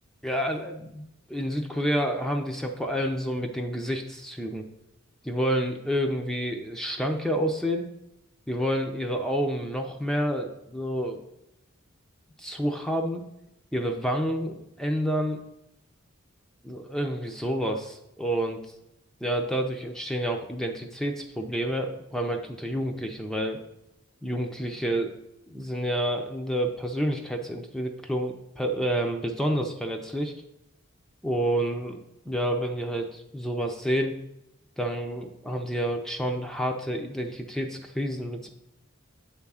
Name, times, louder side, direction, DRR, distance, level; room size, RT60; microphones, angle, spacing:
voice 1, 0.2-4.6 5.2-7.9 8.5-11.2 12.4-13.3 13.7-15.4 16.6-18.6 19.2-23.6 24.2-25.2 25.5-30.3 31.2-34.2 34.8-38.5, equal, 5° left, 3 dB, 0.5 m, -29 dB
8.2 x 3.6 x 5.6 m, 0.86 s
head